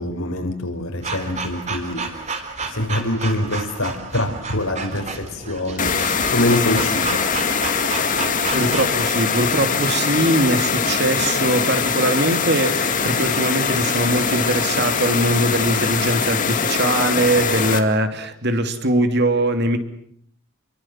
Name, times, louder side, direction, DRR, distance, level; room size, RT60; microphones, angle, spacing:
voice 1, 0.0-2.1 2.7-7.2, left 1 dB, 75° left, 5 dB, 5.7 m, -24 dB
sound 1, 1.0-9.0, right 4 dB, 30° right, 3.6 m, -31 dB
sound 2, 5.8-17.8, left 5 dB, 35° left, 2.2 m, -22 dB
voice 2, 8.5-19.8, right 1 dB, 50° right, 8 dB, 2.9 m, -21 dB
29.5 x 23.5 x 7.5 m, 0.66 s
head